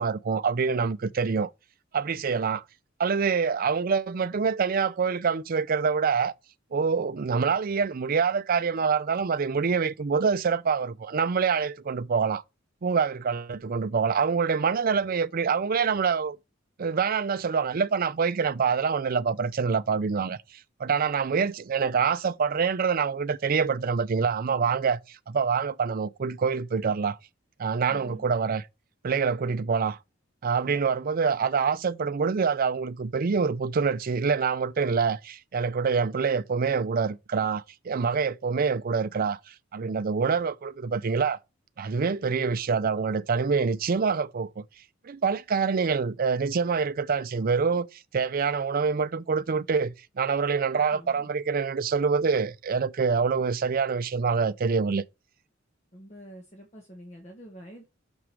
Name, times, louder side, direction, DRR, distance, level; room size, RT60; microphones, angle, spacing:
voice 1, 0.0-1.5 1.9-2.6 3.0-6.3 6.7-12.4 12.8-16.4 16.8-20.4 20.8-27.2 27.6-28.6 29.0-30.0 30.4-41.4 41.8-44.6 45.0-55.0, right 5 dB, 45° right, 0.4 m, -26 dB
voice 2, 27.9-28.3 50.9-51.3 55.9-57.9, equal, 35° left, 1.5 m, -46 dB
6.1 x 4.8 x 5.9 m
head